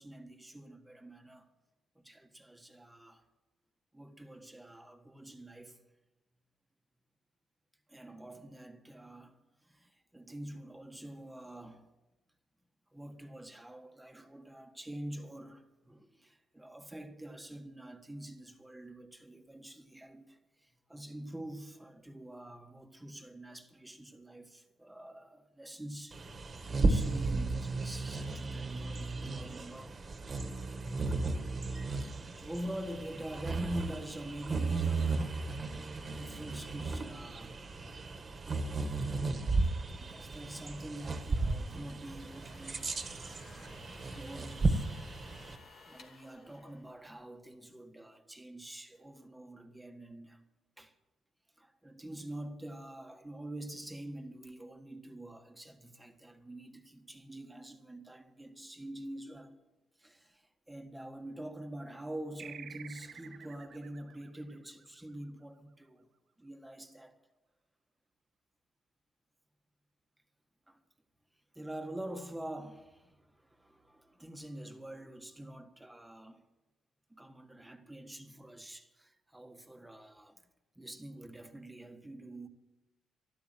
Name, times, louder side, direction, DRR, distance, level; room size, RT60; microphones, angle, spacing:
voice 1, 0.0-1.5 1.9-3.2 3.9-5.8 7.9-11.9 12.9-30.0 31.9-35.3 36.1-39.7 40.0-44.9 45.4-45.5 45.9-50.4 50.8-50.9 51.6-59.5 60.0-66.1 66.4-67.2 70.7-70.8 71.5-76.4 77.1-80.5 80.7-82.5, right 1 dB, 10° right, 1.7 m, -46 dB
Bird vocalization bird call bird song, 26.1-45.6, right 3 dB, 35° right, 1.7 m, -34 dB
sound 1, 41.8-47.4, left 4 dB, 60° left, 2.5 m, -57 dB
sound 2, 62.4-65.4, right 8 dB, 65° right, 1.1 m, -51 dB
13.0 x 12.0 x 7.9 m
cardioid pair, 90°, 0 cm